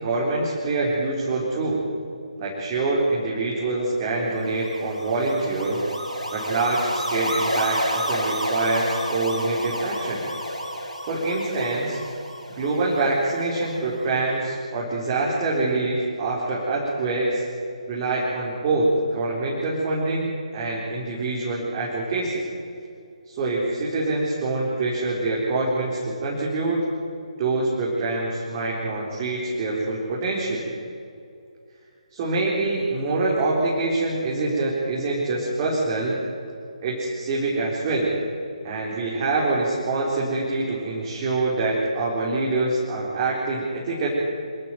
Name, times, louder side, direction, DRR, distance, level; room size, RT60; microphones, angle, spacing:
voice 1, 0.0-1.8 2.4-5.8 6.3-10.2 11.1-12.0 12.5-17.4 17.9-22.4 23.2-26.8 27.4-30.6 32.1-36.2 36.8-38.1 38.6-44.1, right 2 dB, 25° right, -5 dB, 4.2 m, -25 dB
sound 1, 4.4-13.7, equal, 85° right, 5.1 m, -30 dB
26.5 x 12.0 x 9.3 m, 2.5 s
figure-of-eight pair, 145°, 4 cm